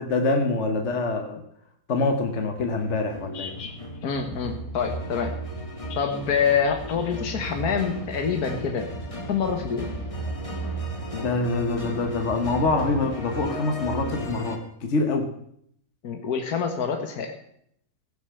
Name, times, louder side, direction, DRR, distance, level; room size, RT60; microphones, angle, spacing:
voice 1, 0.0-1.4 1.9-3.6 11.1-15.3, left 3 dB, 50° left, 4 dB, 1.4 m, -25 dB
sound 1, 2.6-14.6, right 1 dB, 20° left, 1.7 m, -34 dB
voice 2, 3.3-3.7 4.0-5.4 5.9-8.9 9.3-9.9 16.0-17.3, left 6 dB, 75° left, 5 dB, 1.7 m, -26 dB
16.5 x 6.9 x 6.9 m, 0.70 s
omnidirectional pair, 1.6 m